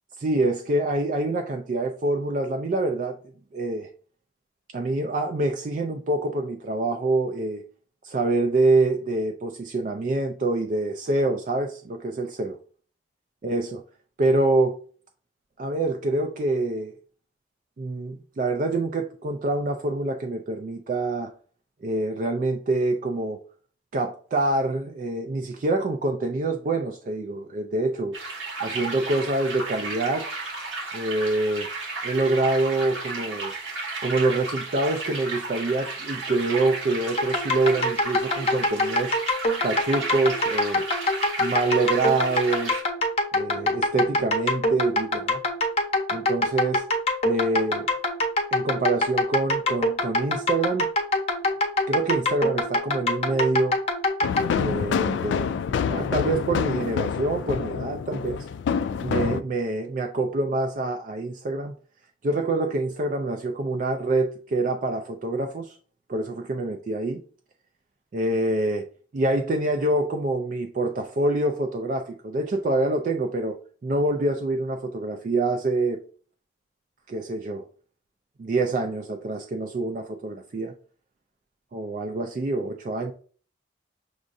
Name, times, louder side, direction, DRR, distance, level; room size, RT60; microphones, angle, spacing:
voice 1, 0.2-3.2 3.5-3.9 4.7-7.6 8.0-12.6 13.4-13.7 14.2-14.8 15.6-16.9 17.8-21.3 21.8-23.4 23.9-28.2 28.6-30.3 30.9-31.7 32.0-33.5 34.0-39.2 39.6-40.9 41.4-42.8 43.3-45.4 46.1-46.8 47.2-47.9 48.5-50.9 51.9-53.8 54.5-55.5 55.9-58.5 59.0-61.7 62.2-65.8 66.1-67.2 68.1-68.9 69.1-76.0 77.1-77.7 78.4-80.7 81.7-83.1, right 2 dB, 45° right, 0.3 m, -26 dB
sound 1, 28.1-42.8, right 3 dB, 90° right, 1.4 m, -33 dB
sound 2, 37.2-54.5, left 1 dB, 35° left, 0.7 m, -24 dB
sound 3, 54.2-59.4, left 6 dB, 75° left, 0.3 m, -27 dB
6.2 x 2.4 x 2.6 m
head